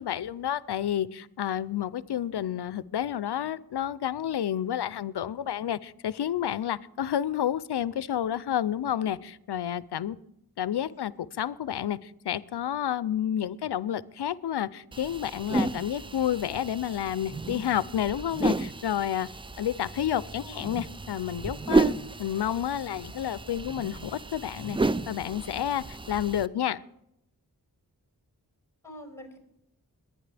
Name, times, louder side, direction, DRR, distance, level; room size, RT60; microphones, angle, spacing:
voice 1, 0.0-10.2 10.6-19.3 19.6-26.8, left 10 dB, 85° left, 18 dB, 0.6 m, -30 dB
sound 1, 14.9-26.5, right 3 dB, 15° right, 0.4 m, -32 dB
voice 2, 20.4-20.7 28.8-29.4, equal, 5° left, 4 dB, 5.6 m, -46 dB
22.0 x 9.6 x 3.4 m, 0.78 s
wide cardioid pair, 50°, 39 cm